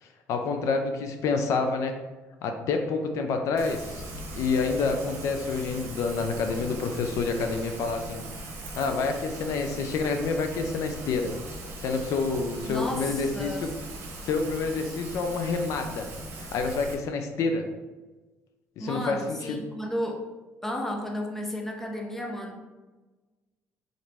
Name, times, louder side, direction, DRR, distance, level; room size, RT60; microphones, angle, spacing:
voice 1, 0.0-1.9 2.4-4.0 4.3-8.2 8.8-11.3 11.8-13.7 14.2-16.1 16.4-17.7 18.8-19.6, left 4 dB, 65° left, 5 dB, 0.4 m, -28 dB
Rain, 3.6-16.9, right 1 dB, 50° right, 1.0 m, -40 dB
voice 2, 12.7-13.7 18.8-20.2 20.6-22.6, equal, 5° left, 1 dB, 0.6 m, -33 dB
3.8 x 3.0 x 3.4 m, 1.2 s
cardioid pair, 130°, 6 cm